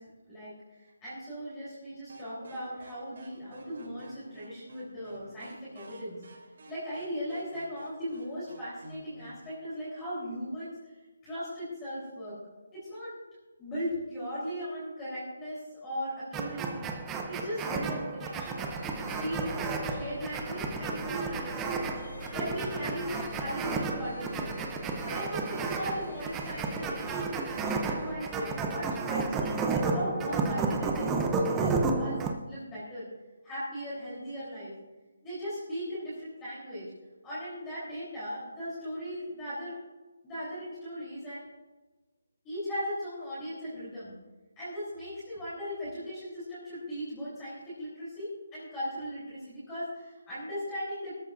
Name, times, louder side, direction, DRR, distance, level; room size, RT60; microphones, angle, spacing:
voice 1, 0.0-6.2 6.7-10.8 11.2-12.4 12.7-13.2 13.6-16.9 17.3-18.6 18.9-21.9 22.3-24.6 25.0-33.1 33.4-34.7 35.2-36.9 37.2-39.8 40.2-41.4 42.4-44.1 44.6-51.2, equal, 10° left, -11 dB, 3.6 m, -38 dB
sound 1, 2.1-9.7, right 1 dB, 50° right, 3.0 m, -52 dB
sound 2, 16.3-32.3, right 4 dB, 5° right, 0.6 m, -32 dB
sound 3, 18.5-28.1, left 2 dB, 60° left, 3.7 m, -46 dB
18.5 x 13.5 x 2.6 m, 1.2 s
hypercardioid pair, 180°, 0 cm